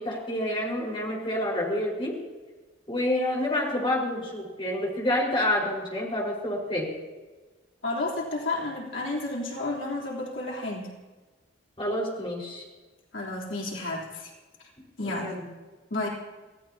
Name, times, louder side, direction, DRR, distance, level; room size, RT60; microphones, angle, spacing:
voice 1, 0.0-2.1 2.9-6.9 11.8-12.6 15.0-15.5, left 1 dB, 30° left, -3 dB, 4.8 m, -28 dB
voice 2, 7.8-10.9 13.1-14.3 15.0-15.3 15.9-16.1, left 2 dB, 80° left, -3 dB, 3.5 m, -31 dB
26.0 x 16.5 x 2.9 m, 1.3 s
head